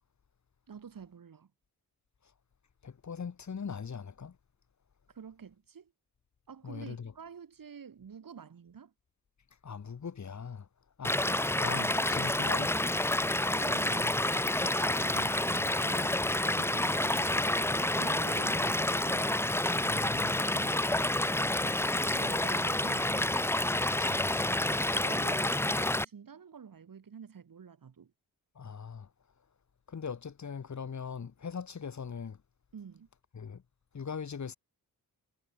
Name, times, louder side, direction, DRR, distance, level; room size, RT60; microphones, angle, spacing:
voice 1, 0.7-1.5 5.1-5.9 6.5-8.9 11.2-12.8 13.2-14.2 14.4-16.2 16.6-19.4 20.5-21.1 21.6-21.8 22.1-23.4 24.6-28.1 32.7-33.1, right 7 dB, 60° right, 6.7 m, -48 dB
voice 2, 2.8-4.4 6.6-7.1 9.6-10.7 11.0-11.3 11.6-12.7 14.0-14.1 16.8-17.0 19.8-20.5 23.9-24.6 28.5-29.1 29.9-32.4 33.3-33.6 33.9-34.5, left 6 dB, 50° left, 2.3 m, -41 dB
Stream / Liquid, 11.0-26.0, left 1 dB, 5° left, 0.7 m, -29 dB
wide cardioid pair, 135°, 37 cm